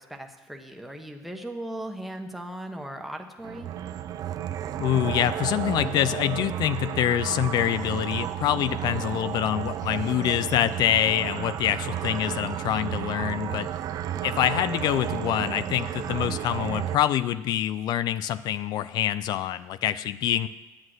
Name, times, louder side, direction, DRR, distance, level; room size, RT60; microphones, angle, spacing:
voice 1, 0.0-3.7, right 1 dB, ahead, 3 dB, 1.2 m, -38 dB
sound 1, 3.4-17.0, right 11 dB, 55° right, 0.6 m, -32 dB
voice 2, 4.8-13.7 14.2-20.5, left 11 dB, 65° left, 14 dB, 0.5 m, -25 dB
9.3 x 8.8 x 7.9 m, 1.1 s
cardioid pair, 115°, 8 cm